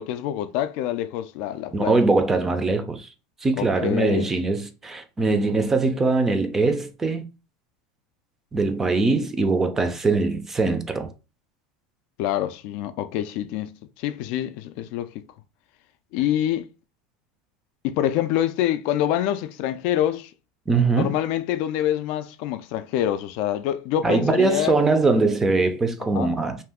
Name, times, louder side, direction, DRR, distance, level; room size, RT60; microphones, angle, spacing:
voice 1, 0.0-1.9 3.6-4.3 12.2-15.2 16.1-16.6 17.8-20.3 21.0-24.8 26.1-26.3, left 11 dB, 55° left, 0.3 m, -26 dB
voice 2, 1.7-3.1 3.4-7.2 8.5-11.1 20.7-21.1 24.0-26.6, right 3 dB, 15° right, 0.4 m, -22 dB
2.6 x 2.3 x 3.5 m
supercardioid pair, 140°, 3 cm